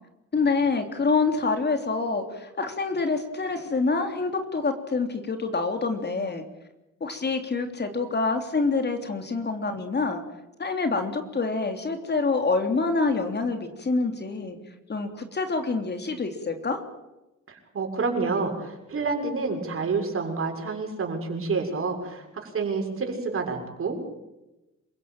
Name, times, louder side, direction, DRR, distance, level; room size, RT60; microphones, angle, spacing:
voice 1, 0.3-6.4 7.0-10.2 10.6-14.6 14.9-16.8, left 4 dB, 35° left, 6 dB, 3.3 m, -26 dB
voice 2, 17.5-24.0, right 4 dB, 45° right, 2 dB, 6.8 m, -28 dB
27.5 x 16.5 x 9.1 m, 0.99 s
cardioid pair, 90°, 30 cm